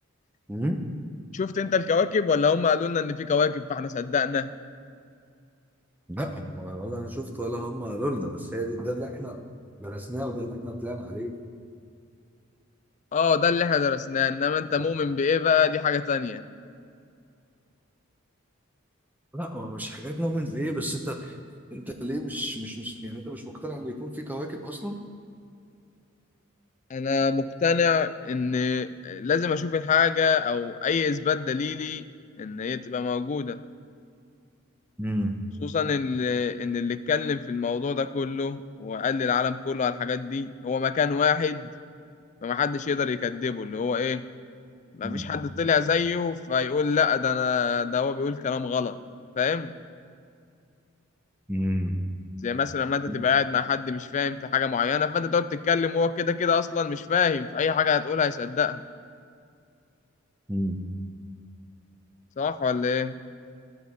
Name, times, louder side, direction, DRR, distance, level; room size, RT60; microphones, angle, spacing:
voice 1, 1.3-4.5 13.1-16.5 26.9-32.1 32.4-33.6 35.6-41.7 42.4-44.3 44.9-49.0 49.4-49.7 52.4-58.8 62.4-63.1, left 6 dB, 35° left, 13 dB, 0.3 m, -25 dB
voice 2, 6.1-9.4 9.8-11.3 19.3-21.4 21.7-25.0 35.0-35.4 45.0-45.3 51.5-52.0 53.1-53.2 60.5-60.8, equal, 10° right, 4 dB, 0.6 m, -31 dB
13.5 x 4.7 x 7.0 m, 2.3 s
head